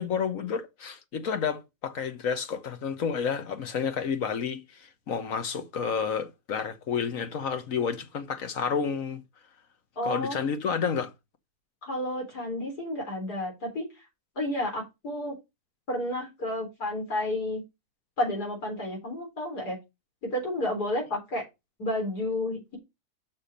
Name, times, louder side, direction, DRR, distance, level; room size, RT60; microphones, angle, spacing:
voice 1, 0.0-9.2 10.0-11.1, left 6 dB, 60° left, 1.4 m, -30 dB
voice 2, 10.0-10.4 11.8-13.8 14.4-15.4 15.9-17.6 18.2-19.8 20.2-21.4 21.8-22.8, left 1 dB, 80° left, 4.3 m, -31 dB
6.7 x 5.8 x 5.2 m
omnidirectional pair, 1.7 m